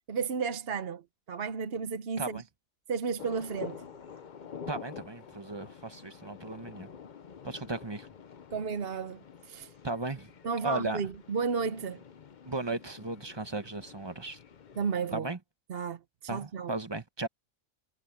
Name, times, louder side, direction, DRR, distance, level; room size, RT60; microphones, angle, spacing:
voice 1, 0.1-1.0 1.3-2.4 2.9-3.8 8.5-9.7 10.4-12.0 14.8-15.3 15.7-16.7, right 5 dB, 50° right, 1.0 m, -33 dB
sound 1, 3.2-15.1, left 6 dB, 45° left, 0.7 m, -48 dB
voice 2, 4.7-6.9 7.4-8.1 9.8-10.3 10.6-11.0 12.4-14.4 15.1-15.4 16.3-17.3, right 2 dB, 20° right, 1.1 m, -36 dB
omnidirectional pair, 1.4 m